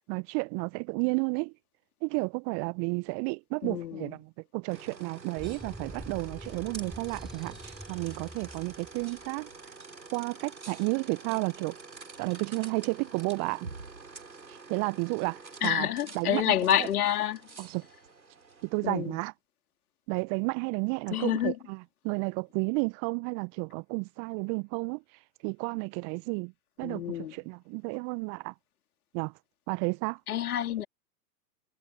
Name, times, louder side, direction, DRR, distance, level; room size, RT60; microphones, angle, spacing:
voice 1, 0.1-1.5 2.0-9.5 10.1-11.8 12.2-13.7 14.5-15.9 16.1-16.9 17.6-17.9 18.6-19.3 20.1-21.8 22.0-25.0 25.4-26.5 26.8-28.5 29.1-29.3 29.7-30.2, right 36 dB, 30° right, 1.0 m, -32 dB
voice 2, 3.6-4.1 15.6-17.4 18.8-19.2 21.1-21.6 26.8-27.4 30.3-30.9, left 11 dB, 60° left, 2.7 m, -28 dB
sound 1, 4.7-19.1, right 4 dB, 85° right, 4.5 m, -47 dB
sound 2, 5.4-9.3, equal, ahead, 8.0 m, -45 dB
figure-of-eight pair, 105°, 49 cm